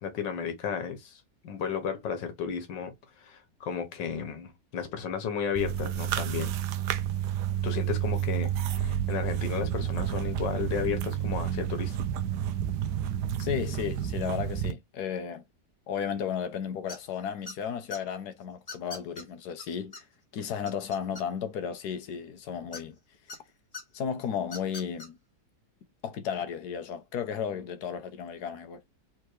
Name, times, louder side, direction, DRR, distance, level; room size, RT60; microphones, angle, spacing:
voice 1, 0.0-6.5 7.6-12.0, left 7 dB, 90° left, 1.7 m, -33 dB
sound 1, 5.6-14.7, right 10 dB, 75° right, 1.2 m, -30 dB
voice 2, 13.4-15.4 15.9-20.1 20.3-23.0 23.9-25.2 26.0-28.8, left 8 dB, 70° left, 1.2 m, -34 dB
sound 2, 16.9-17.1 17.5-18.0 18.7-19.2 19.6-19.7 19.9-20.0 20.4-21.5 22.7-23.4 23.7-23.8 24.4-25.1, left 3 dB, 30° left, 0.9 m, -41 dB
3.7 x 3.5 x 3.1 m
omnidirectional pair, 1.9 m